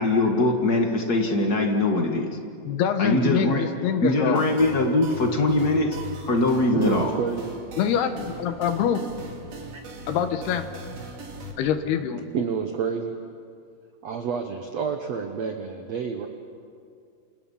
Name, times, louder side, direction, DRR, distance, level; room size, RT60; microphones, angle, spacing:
voice 1, 0.0-2.3 3.0-3.6 4.0-5.9 6.3-7.1, left 2 dB, 50° left, 2 dB, 1.1 m, -22 dB
voice 2, 2.6-4.4 7.8-9.0 10.1-10.7 11.6-12.3, left 8 dB, 75° left, 8 dB, 3.2 m, -25 dB
sound 1, 4.4-11.5, right 1 dB, 40° right, 3.3 m, -40 dB
voice 3, 6.7-7.5 9.5-9.6 12.3-13.1 14.0-16.3, right 6 dB, 75° right, 5 dB, 1.5 m, -28 dB
28.5 x 28.5 x 5.7 m, 2.3 s
omnidirectional pair, 4.8 m